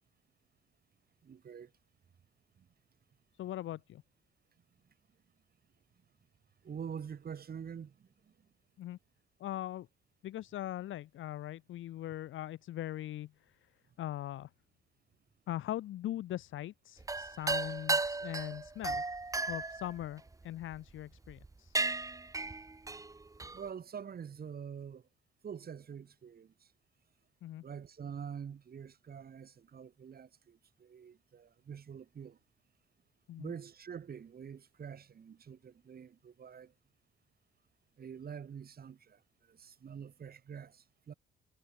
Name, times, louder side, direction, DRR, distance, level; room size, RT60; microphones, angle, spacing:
voice 1, 1.2-1.7 2.6-2.7 6.6-8.1 23.5-25.0 25.4-26.7 27.6-32.4 33.4-36.7 38.0-39.2 39.5-41.1, right 7 dB, 50° right, 4.9 m, -46 dB
voice 2, 3.3-4.0 8.8-9.0 9.4-9.9 10.2-13.7 14.0-14.5 15.5-19.0 19.5-21.8 27.4-27.7 33.3-33.5, left 13 dB, 80° left, 3.4 m, -41 dB
sound 1, 17.0-20.8 21.3-21.5 21.7-23.7, right 3 dB, 15° right, 1.1 m, -35 dB
cardioid pair, 90°, 20 cm